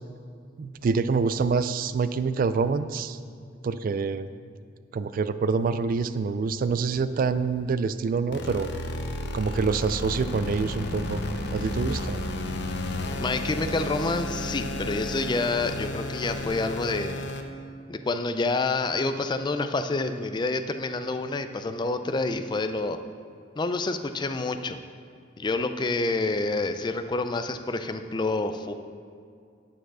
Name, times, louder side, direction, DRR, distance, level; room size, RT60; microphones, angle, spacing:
voice 1, 0.6-3.2 3.6-4.3 4.9-8.7 9.3-11.2 11.5-12.2, right 4 dB, 50° right, 13 dB, 0.3 m, -26 dB
sound 1, 8.3-17.4, left 1 dB, 65° left, 0.7 m, -32 dB
voice 2, 13.2-17.2 17.9-23.0 23.6-24.8 25.4-28.7, left 3 dB, 25° left, 9 dB, 0.4 m, -28 dB
9.0 x 4.8 x 6.1 m, 2.3 s
head